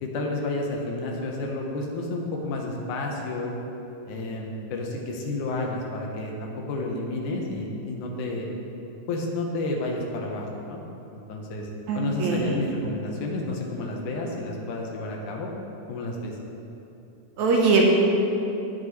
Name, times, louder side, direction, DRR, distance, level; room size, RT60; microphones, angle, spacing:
voice 1, 0.0-3.5 4.1-8.5 9.1-10.8 11.1-11.7 11.9-15.5 15.9-16.3, left 2 dB, 85° left, 0 dB, 2.4 m, -31 dB
voice 2, 11.9-12.6 17.4-17.9, right 4 dB, 75° right, -1 dB, 2.1 m, -21 dB
16.5 x 6.1 x 3.1 m, 2.9 s
omnidirectional pair, 3.6 m